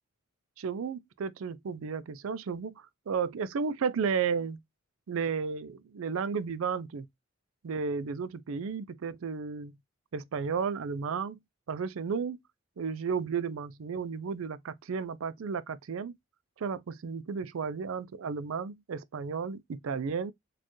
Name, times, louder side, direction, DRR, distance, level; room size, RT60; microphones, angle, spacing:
voice 1, 0.6-4.6 5.1-7.1 7.6-9.7 10.1-11.4 11.7-12.4 12.8-16.1 16.6-20.3, right 6 dB, 75° right, 0.4 m, -33 dB
4.3 x 2.4 x 3.0 m
head